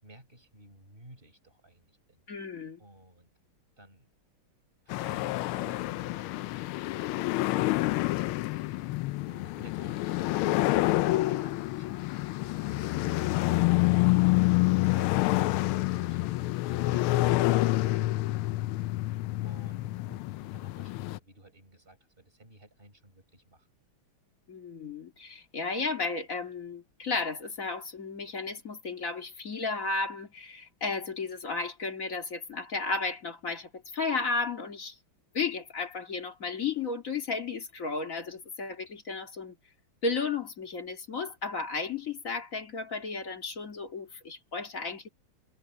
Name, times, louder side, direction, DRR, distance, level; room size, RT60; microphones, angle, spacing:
voice 1, 0.0-2.2 2.8-3.3 3.8-4.1 4.9-8.9 9.2-10.6 11.1-13.9 14.8-18.1 19.4-23.7, right 1 dB, 25° right, 5.8 m, -54 dB
voice 2, 2.3-2.8 24.5-35.0 35.3-39.6 40.0-45.1, left 4 dB, 40° left, 2.3 m, -34 dB
sound 1, 4.9-21.2, left 18 dB, 85° left, 1.4 m, -27 dB
omnidirectional pair, 2.3 m